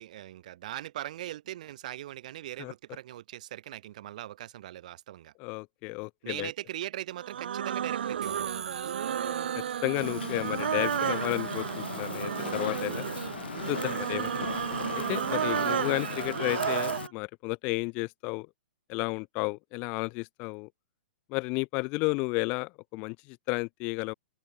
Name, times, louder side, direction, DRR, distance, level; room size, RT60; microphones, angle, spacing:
voice 1, 0.0-5.3 6.2-8.5 15.3-15.8, right 13 dB, 45° right, 1.8 m, -40 dB
voice 2, 5.4-6.5 9.2-9.4 9.8-13.0 13.7-14.5 14.9-18.5 18.9-20.7 21.3-24.1, left 29 dB, 20° left, 0.3 m, -32 dB
sound 1, 7.2-17.1, right 9 dB, 75° right, 0.3 m, -32 dB
sound 2, 8.2-11.8, right 7 dB, 10° right, 1.7 m, -46 dB
Fire, 10.0-17.1, left 8 dB, 70° left, 1.5 m, -38 dB
open air
hypercardioid pair, 170°, 6 cm